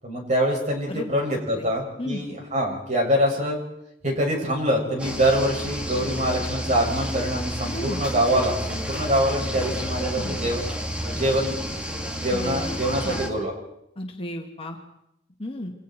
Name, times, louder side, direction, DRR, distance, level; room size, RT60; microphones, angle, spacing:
voice 1, 0.0-3.6 4.0-10.7 11.1-11.5 12.1-13.5, equal, 40° right, 0 dB, 7.5 m, -24 dB
sound 1, 5.0-13.3, equal, 5° right, 2.7 m, -30 dB
voice 2, 7.6-8.0 10.1-10.4 12.3-12.7 13.0-13.2 14.0-14.8 15.4-15.7, left 1 dB, 30° left, 2 dB, 2.8 m, -33 dB
29.0 x 26.5 x 4.8 m, 0.77 s
head